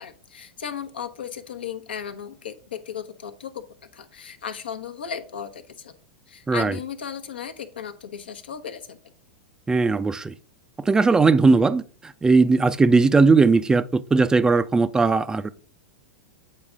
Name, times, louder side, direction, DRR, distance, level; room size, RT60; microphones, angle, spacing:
voice 1, 0.0-3.6 3.9-6.0 6.3-9.0, left 8 dB, 75° left, 0.9 m, -35 dB
voice 2, 9.7-10.3 10.8-15.5, right 4 dB, 10° right, 0.4 m, -18 dB
8.5 x 4.0 x 3.6 m
hypercardioid pair, 100°, 5 cm